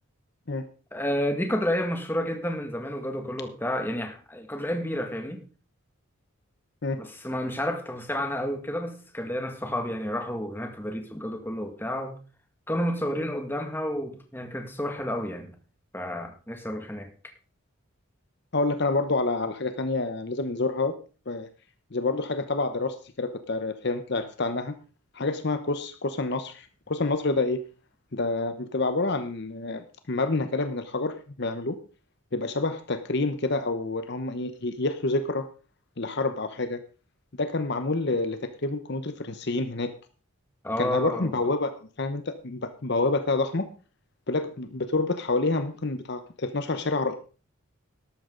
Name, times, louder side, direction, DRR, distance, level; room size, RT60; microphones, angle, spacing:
voice 1, 0.9-5.4 7.0-12.1 12.7-15.5 15.9-17.1 40.6-41.3, equal, 10° left, 4 dB, 1.9 m, -30 dB
voice 2, 18.5-20.9 21.3-21.5 21.9-24.7 25.1-27.6 28.1-31.8 32.3-35.5 36.0-36.8 37.4-39.9 40.8-43.6 44.3-47.1, left 3 dB, 50° left, 10 dB, 0.9 m, -28 dB
13.0 x 12.0 x 3.9 m, 0.36 s
head